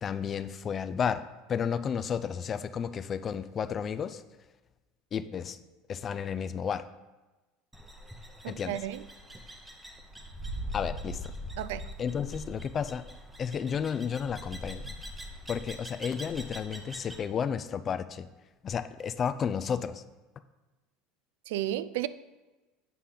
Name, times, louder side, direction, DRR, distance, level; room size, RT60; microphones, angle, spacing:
voice 1, 0.0-4.2 5.1-5.6 5.9-6.8 8.5-8.8 10.7-11.3 12.0-13.0 13.4-15.0 15.5-18.3 18.6-20.0, left 7 dB, 25° left, 0.3 m, -32 dB
sound 1, 7.7-17.2, equal, 5° right, 0.7 m, -42 dB
voice 2, 8.4-9.0 11.6-11.9 21.5-22.1, right 13 dB, 90° right, 0.3 m, -33 dB
8.3 x 5.7 x 3.8 m
cardioid pair, 155°, 0 cm